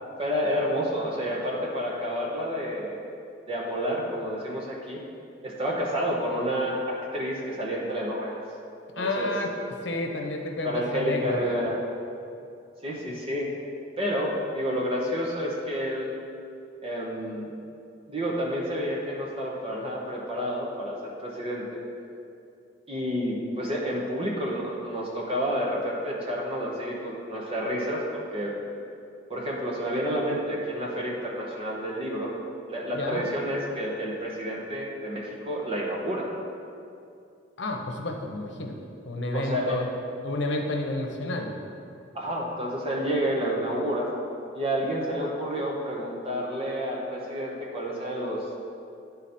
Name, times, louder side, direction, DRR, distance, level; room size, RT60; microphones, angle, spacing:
voice 1, 0.2-3.0 3.5-5.0 5.4-8.4 9.0-9.3 10.6-11.8 12.8-13.5 14.0-16.2 16.8-17.5 18.1-21.8 22.9-28.5 29.3-32.3 32.7-36.3 39.3-39.8 42.1-44.1 44.5-48.4, equal, 30° right, -3 dB, 0.9 m, -29 dB
voice 2, 9.0-9.5 9.8-11.6 32.9-33.3 37.6-38.7 39.1-39.8 40.2-41.5, left 2 dB, 65° left, 2 dB, 0.9 m, -30 dB
10.5 x 4.0 x 4.3 m, 2.5 s
head